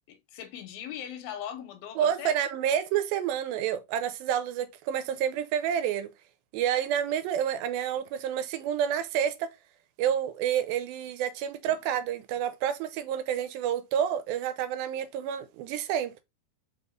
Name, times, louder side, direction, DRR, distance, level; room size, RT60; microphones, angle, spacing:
voice 1, 0.1-2.4 11.7-11.8, left 9 dB, 80° left, 2.5 m, -40 dB
voice 2, 2.0-6.1 6.5-9.5 10.0-16.1, right 9 dB, 85° right, 2.4 m, -29 dB
5.5 x 3.6 x 2.5 m
omnidirectional pair, 4.3 m